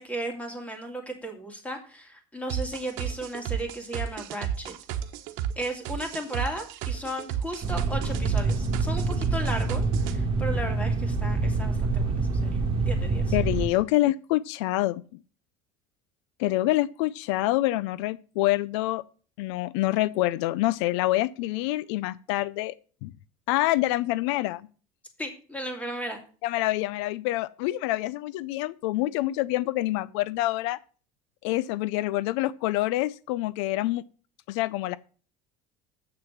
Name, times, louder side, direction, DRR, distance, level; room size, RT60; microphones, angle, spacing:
voice 1, 0.0-4.7 5.6-13.3 25.2-26.2, right 1 dB, 10° left, 2.7 m, -35 dB
sound 1, 2.5-10.1, right 9 dB, 70° right, 1.2 m, -32 dB
sound 2, 7.6-13.7, right 3 dB, 35° right, 2.0 m, -26 dB
voice 2, 13.3-15.0 16.4-19.0 19.4-22.7 23.0-23.1 23.5-24.7 26.4-30.8 31.4-34.0 34.5-35.0, left 17 dB, 85° left, 0.5 m, -26 dB
8.0 x 6.5 x 7.2 m
cardioid pair, 135°, 15 cm